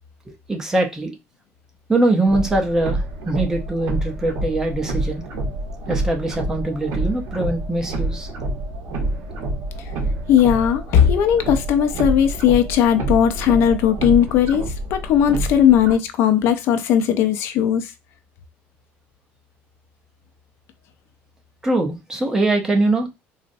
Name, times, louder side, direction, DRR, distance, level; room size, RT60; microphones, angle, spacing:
voice 1, 0.5-1.1 1.9-5.2 5.9-8.3 21.6-23.1, right 2 dB, 10° right, 0.6 m, -22 dB
sound 1, 2.3-15.9, right 1 dB, 60° right, 0.9 m, -27 dB
voice 2, 10.3-17.9, left 9 dB, 60° left, 0.4 m, -17 dB
3.9 x 2.0 x 2.6 m
cardioid pair, 150°, 5 cm